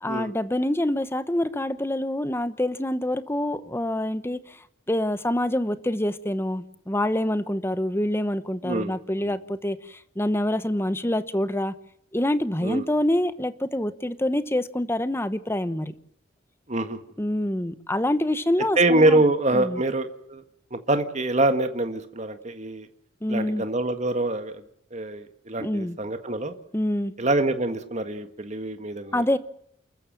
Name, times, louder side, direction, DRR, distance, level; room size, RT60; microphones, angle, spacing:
voice 1, 0.0-4.6 4.9-11.7 12.1-15.9 17.2-19.2 19.5-19.8 23.2-23.7 25.6-26.0 26.7-27.1 29.1-29.4, left 1 dB, 10° left, 13 dB, 1.0 m, -26 dB
voice 2, 8.6-8.9 9.2-9.3 12.6-12.8 16.7-17.0 18.8-20.4 20.7-22.9 23.3-24.5 24.9-26.5 27.2-29.4, right 2 dB, 35° right, 8 dB, 1.7 m, -25 dB
29.0 x 14.0 x 7.6 m, 0.72 s
head